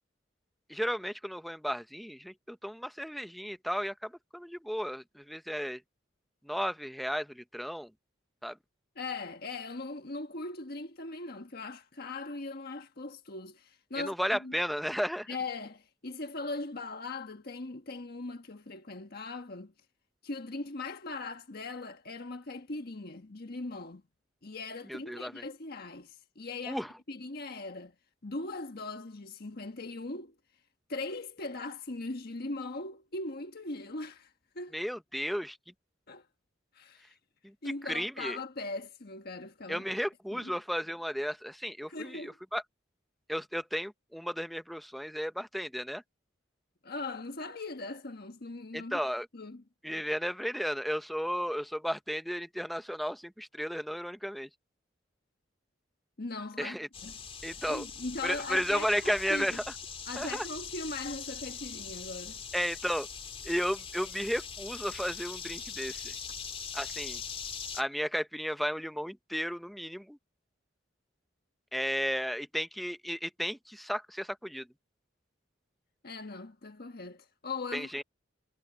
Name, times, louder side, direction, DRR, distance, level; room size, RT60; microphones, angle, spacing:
voice 1, 0.7-5.8 6.4-7.9 8.4-8.6 14.0-15.4 24.9-25.4 26.7-26.9 34.7-35.6 37.4-37.5 37.8-38.4 39.7-42.6 43.3-46.0 48.7-49.3 49.8-54.5 56.6-56.9 57.4-57.9 58.2-59.6 60.2-60.5 62.5-63.1 63.4-66.1 66.7-67.2 67.7-70.2 71.7-74.7 77.7-78.0, equal, ahead, 0.8 m, -34 dB
voice 2, 8.9-14.5 15.3-19.7 20.2-24.0 24.4-27.9 28.2-30.3 30.9-34.9 36.1-36.2 36.7-37.1 37.6-39.8 40.3-40.5 41.9-42.3 46.8-49.0 49.3-49.6 56.2-56.8 57.0-57.2 57.6-59.6 60.1-62.4 76.0-78.0, left 3 dB, 55° left, 1.4 m, -40 dB
sound 1, 56.9-67.8, left 6 dB, 30° left, 3.4 m, -42 dB
head